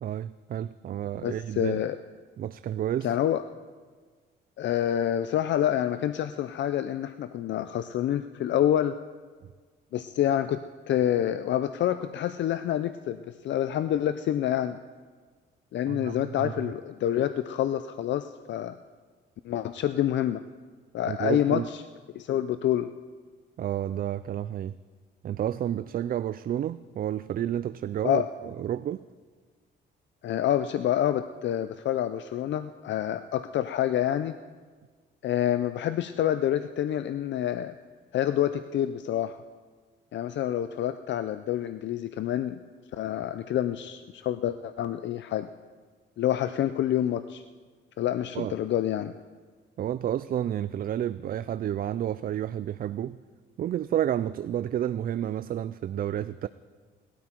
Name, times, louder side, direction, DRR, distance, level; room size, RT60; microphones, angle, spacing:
voice 1, 0.0-1.8 2.4-3.1 15.9-16.7 21.1-21.7 23.6-24.8 25.2-29.0 48.3-48.6 49.8-53.2 53.6-56.5, right 11 dB, 50° right, 0.4 m, -30 dB
voice 2, 1.2-2.0 3.0-3.4 4.6-9.0 9.9-14.8 15.7-18.8 19.4-20.4 20.9-21.6 22.1-22.9 28.0-28.3 30.2-34.3 35.2-37.7 38.1-39.4 40.1-42.6 42.9-45.5 46.2-47.4 48.0-49.1, left 11 dB, 65° left, 0.5 m, -27 dB
19.5 x 12.5 x 4.5 m
cardioid pair, 90°, 20 cm